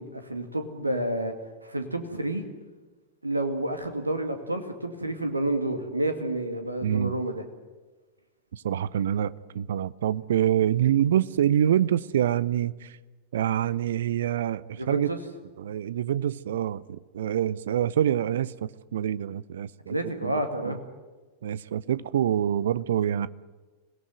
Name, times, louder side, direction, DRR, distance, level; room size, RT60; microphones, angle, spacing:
voice 1, 0.0-1.3 1.6-2.5 3.2-7.4 14.8-15.2 19.9-20.8, right 1 dB, 85° right, 2.2 m, -29 dB
voice 2, 6.8-7.2 8.5-13.0 13.3-15.1 15.6-20.0 20.2-20.4 20.7-20.8 21.4-23.3, right 10 dB, 60° right, 0.7 m, -26 dB
26.5 x 18.5 x 9.3 m
figure-of-eight pair, 90°, 0 cm